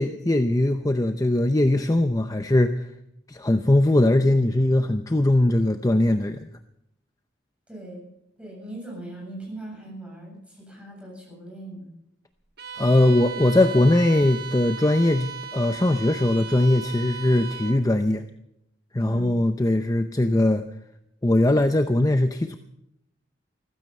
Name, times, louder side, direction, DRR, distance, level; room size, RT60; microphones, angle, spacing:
voice 1, 0.0-2.7 3.3-6.4 12.8-18.2 18.9-20.6 21.2-22.6, left 1 dB, 20° left, 8 dB, 0.6 m, -20 dB
voice 2, 7.7-8.0 8.4-11.9 19.0-19.3, right 1 dB, 5° right, -2 dB, 7.9 m, -39 dB
Bowed string instrument, 12.6-17.9, right 6 dB, 60° right, 1.4 m, -37 dB
16.0 x 15.0 x 5.5 m, 0.80 s
head